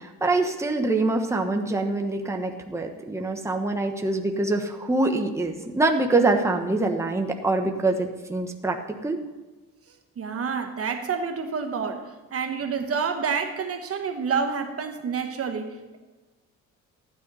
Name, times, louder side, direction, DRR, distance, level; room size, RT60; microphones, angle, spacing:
voice 1, 0.0-8.8 9.0-9.2, right 2 dB, 10° right, 2 dB, 1.2 m, -25 dB
voice 2, 10.2-16.0, right 5 dB, 45° right, 6 dB, 1.2 m, -28 dB
14.5 x 9.8 x 4.1 m, 1.2 s
cardioid pair, 100°, 33 cm